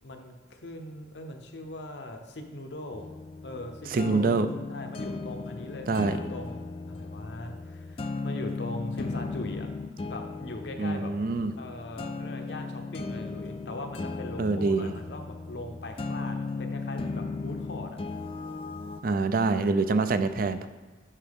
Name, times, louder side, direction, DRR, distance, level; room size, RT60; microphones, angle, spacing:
voice 1, 0.0-3.1 3.4-4.3 4.7-6.6 6.9-9.7 10.0-11.1 11.6-18.0, left 1 dB, 75° left, 4 dB, 0.8 m, -40 dB
sound 1, 2.9-19.0, left 3 dB, 30° left, 0.3 m, -36 dB
voice 2, 3.9-4.5 5.9-6.2 10.8-11.5 14.4-14.9 19.0-20.7, right 3 dB, 50° right, 11 dB, 0.4 m, -25 dB
9.9 x 4.7 x 3.6 m, 1.3 s
head